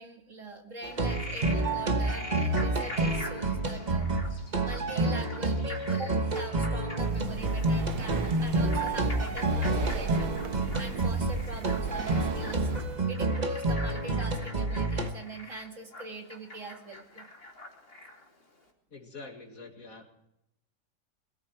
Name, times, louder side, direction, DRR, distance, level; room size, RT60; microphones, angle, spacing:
voice 1, 0.0-4.1 4.6-10.4 10.8-12.7 13.1-17.3, right 2 dB, 45° right, 3 dB, 2.5 m, -42 dB
Frog, 0.8-18.3, left 1 dB, 30° left, 3.1 m, -44 dB
sound 1, 0.8-15.1, right 2 dB, 30° right, 1.2 m, -29 dB
Breathing, 7.0-13.1, right 6 dB, 65° right, 1.5 m, -38 dB
voice 2, 18.9-20.1, left 3 dB, 50° left, 3 dB, 2.6 m, -45 dB
21.5 x 14.0 x 4.7 m, 0.81 s
omnidirectional pair, 1.9 m